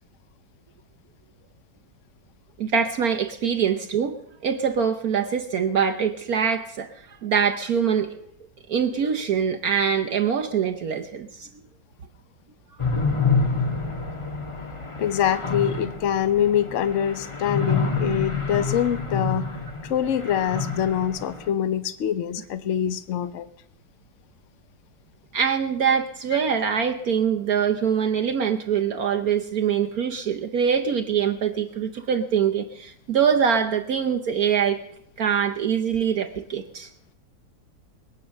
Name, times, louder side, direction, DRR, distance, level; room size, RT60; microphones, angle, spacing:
voice 1, 2.6-4.1 4.4-6.9 7.2-8.1 8.7-11.5 25.3-34.8 35.2-36.9, right 7 dB, 60° right, 6 dB, 1.2 m, -24 dB
sound 1, 12.8-21.5, left 4 dB, 20° left, 1.2 m, -27 dB
voice 2, 15.0-19.5 19.8-23.5, left 9 dB, 50° left, 13 dB, 1.0 m, -24 dB
21.5 x 8.9 x 6.5 m, 0.73 s
omnidirectional pair, 2.0 m